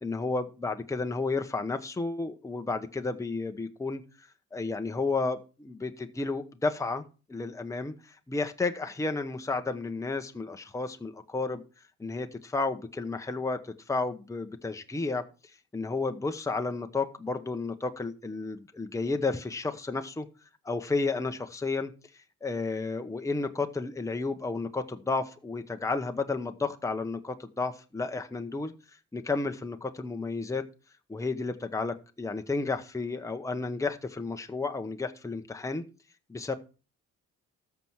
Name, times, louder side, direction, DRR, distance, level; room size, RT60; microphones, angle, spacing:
voice 1, 0.0-7.0 7.3-11.6 12.0-15.2 15.7-20.3 20.6-21.9 22.4-28.7 29.1-30.6 31.1-35.8 36.3-36.5, left 3 dB, 10° left, 6 dB, 0.9 m, -32 dB
13.5 x 5.9 x 4.7 m, 0.35 s
cardioid pair, 90°, 30 cm